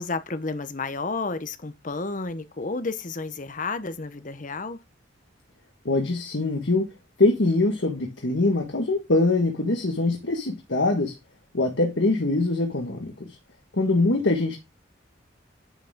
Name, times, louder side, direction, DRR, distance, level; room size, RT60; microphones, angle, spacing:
voice 1, 0.0-4.8, left 3 dB, 45° left, 0.9 m, -31 dB
voice 2, 5.8-6.9 7.2-11.1 11.5-13.4 13.7-14.6, left 2 dB, 70° left, 1.6 m, -23 dB
10.0 x 6.6 x 3.6 m
head